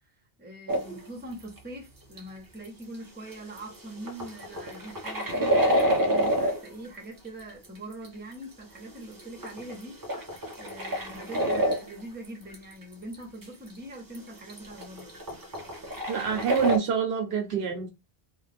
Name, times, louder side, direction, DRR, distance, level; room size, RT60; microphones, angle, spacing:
voice 1, 0.4-10.3 10.6-15.2, right 1 dB, 10° right, 0.8 m, -43 dB
sound 1, 0.7-1.1 1.6-1.7 2.2-2.3 2.6-2.7 2.9-3.0 3.3-3.8 4.0-6.9 7.4-8.1 8.9-12.0 12.2-12.6 12.8-12.9 13.1-13.2 13.4-13.5 13.8-13.9 14.1-14.2 14.5-16.8, equal, 30° right, 0.4 m, -28 dB
voice 2, 16.1-17.9, right 7 dB, 75° right, 0.9 m, -26 dB
2.4 x 2.4 x 3.2 m
omnidirectional pair, 1.1 m